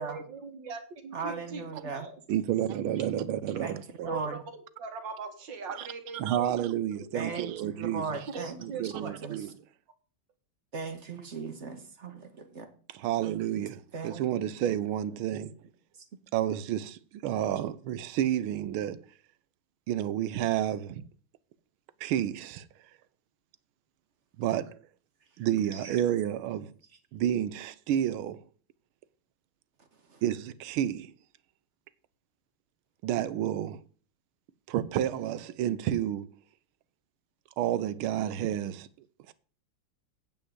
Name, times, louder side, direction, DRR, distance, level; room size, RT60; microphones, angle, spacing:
voice 1, 0.0-1.6 1.9-2.1 4.0-4.4 4.8-7.5 8.3-9.2, right 4 dB, 60° right, 2.2 m, -41 dB
voice 2, 1.1-2.1 3.6-3.8 4.0-4.4 7.1-9.5 10.7-12.7 13.9-14.2 25.7-26.0 30.1-30.2, right 4 dB, 40° right, 1.2 m, -38 dB
voice 3, 2.3-4.1 5.7-5.9 6.1-8.0 8.6-9.5 13.0-15.5 16.3-19.0 19.9-21.0 22.0-22.6 24.4-24.8 25.4-26.7 27.1-28.4 30.2-31.1 33.0-33.8 34.7-36.3 37.6-38.9 39.3-39.4, right 11 dB, 90° right, 1.5 m, -30 dB
8.8 x 5.3 x 7.8 m
omnidirectional pair, 2.3 m